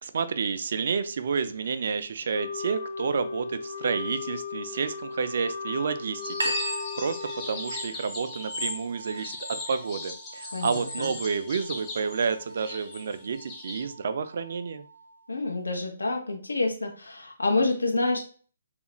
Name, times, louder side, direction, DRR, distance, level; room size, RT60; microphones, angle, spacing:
voice 1, 0.0-9.4 9.7-14.9, right 5 dB, 60° right, 11 dB, 0.3 m, -30 dB
Wind instrument woodwind instrument, 2.3-8.0, left 5 dB, 55° left, 0.3 m, -36 dB
sound 1, 6.2-13.8, left 3 dB, 20° left, 0.7 m, -38 dB
sound 2, 6.4-15.4, right 1 dB, 90° right, 0.7 m, -39 dB
voice 2, 10.5-11.1 15.3-18.2, left 2 dB, 90° left, 1 dB, 0.7 m, -28 dB
2.4 x 2.1 x 3.0 m, 0.42 s
figure-of-eight pair, 140°, 0 cm